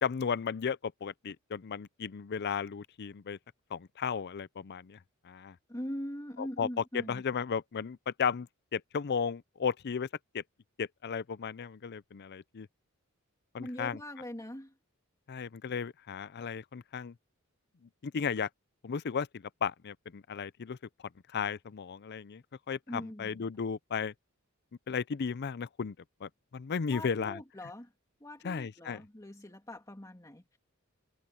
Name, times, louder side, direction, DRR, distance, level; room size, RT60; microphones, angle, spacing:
voice 1, 0.0-3.4 3.7-5.0 5.2-5.6 6.4-6.7 6.9-10.1 10.3-10.4 10.8-12.7 13.5-14.0 15.3-17.1 18.0-18.5 18.8-20.8 21.3-24.1 24.9-25.9 26.2-27.4 28.4-29.0, left 6 dB, 50° left, 0.5 m, -35 dB
voice 2, 5.7-7.2 13.6-14.7 22.9-23.4 26.9-27.9 28.2-30.6, equal, 15° left, 2.3 m, -42 dB
head